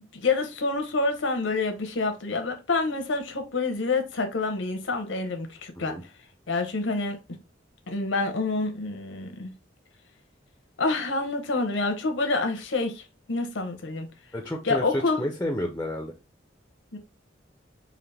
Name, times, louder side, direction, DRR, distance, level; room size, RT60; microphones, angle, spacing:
voice 1, 0.0-6.0 6.5-7.2 7.9-9.5 10.8-14.1 14.6-15.2 16.9-17.0, left 3 dB, 85° left, 0.9 m, -27 dB
voice 2, 14.3-16.1, left 1 dB, 10° left, 0.4 m, -30 dB
3.9 x 2.5 x 3.3 m
head